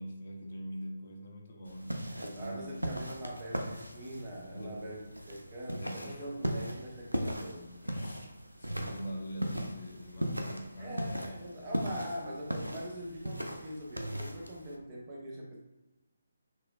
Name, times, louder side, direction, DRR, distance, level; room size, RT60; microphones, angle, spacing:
voice 1, 0.0-2.7 4.5-4.9 5.7-6.3 7.8-8.3 8.6-11.4, equal, 50° left, 0 dB, 0.9 m, -43 dB
sound 1, 1.7-14.8, equal, 90° right, 0.5 m, -38 dB
voice 2, 2.1-7.8 10.8-15.6, equal, 30° right, -2 dB, 0.8 m, -42 dB
5.7 x 2.2 x 2.3 m, 1.1 s
figure-of-eight pair, 145°, 0 cm